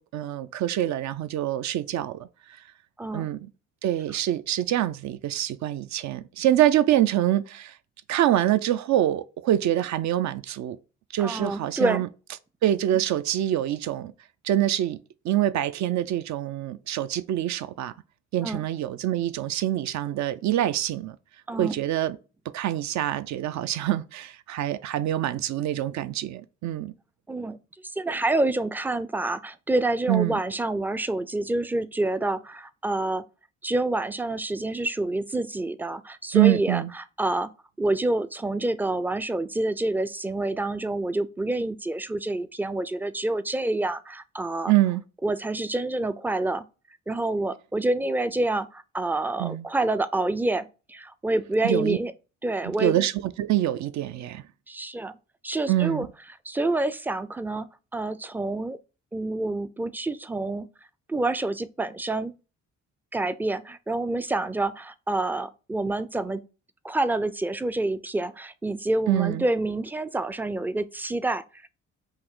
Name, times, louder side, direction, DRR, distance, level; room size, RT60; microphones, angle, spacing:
voice 1, 0.0-2.3 3.1-3.4 3.8-7.7 8.1-10.8 11.1-12.1 12.6-14.1 14.4-15.0 15.2-17.9 18.3-21.2 21.6-22.2 22.5-26.9 30.1-30.3 36.3-36.9 44.7-45.0 49.4-49.7 51.6-52.0 52.8-54.4 55.7-56.1 69.1-69.4, right 13 dB, 70° right, 0.5 m, -25 dB
voice 2, 3.0-3.3 11.2-12.0 18.4-18.6 21.5-21.8 27.3-27.6 27.8-33.2 33.6-37.5 37.8-44.7 45.2-46.6 47.1-52.1 52.4-52.9 54.7-55.1 55.4-56.1 56.4-58.8 59.1-60.7 61.1-62.3 63.1-66.4 66.8-71.4, right 2 dB, 5° right, 0.3 m, -27 dB
5.6 x 2.6 x 3.6 m
cardioid pair, 90°, 30 cm